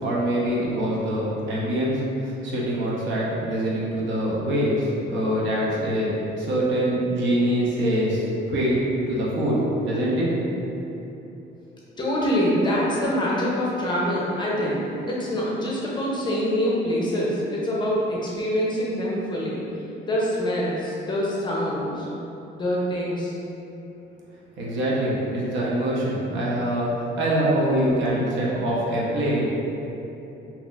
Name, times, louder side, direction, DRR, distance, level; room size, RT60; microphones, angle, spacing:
voice 1, 0.0-6.1 6.4-8.2 8.5-10.3 24.6-29.4, right 1 dB, 75° right, -5 dB, 0.8 m, -24 dB
voice 2, 12.0-14.8 15.1-19.6 20.1-22.1 22.5-23.3, equal, 25° left, -6 dB, 0.5 m, -25 dB
4.2 x 2.8 x 2.3 m, 3.0 s
cardioid pair, 170°, 20 cm